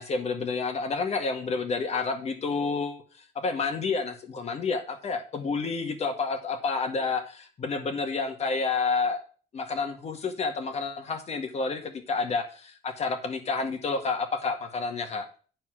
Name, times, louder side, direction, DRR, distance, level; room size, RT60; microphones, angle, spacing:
voice 1, 0.0-3.0 3.3-9.2 9.5-15.3, left 4 dB, 40° left, 6 dB, 1.7 m, -29 dB
9.7 x 4.3 x 6.2 m, 0.40 s
cardioid pair, 110°, 17 cm